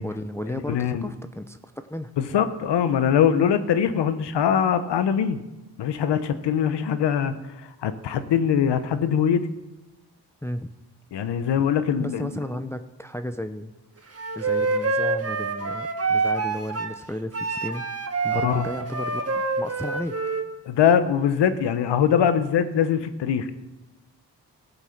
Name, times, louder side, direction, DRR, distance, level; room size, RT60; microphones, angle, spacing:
voice 1, 0.0-2.1 10.4-10.7 12.0-13.7 14.1-17.9 18.2-20.2, left 1 dB, 5° left, 8 dB, 0.7 m, -34 dB
voice 2, 0.5-1.1 2.2-5.4 5.8-7.3 7.6-9.5 11.1-12.3 18.3-18.6 20.7-23.5, left 8 dB, 90° left, 12 dB, 0.9 m, -22 dB
Wind instrument woodwind instrument, 14.2-16.9 17.3-20.5, right 3 dB, 35° right, 1.6 m, -26 dB
15.0 x 8.1 x 5.8 m, 1.0 s
supercardioid pair, 40°, 41 cm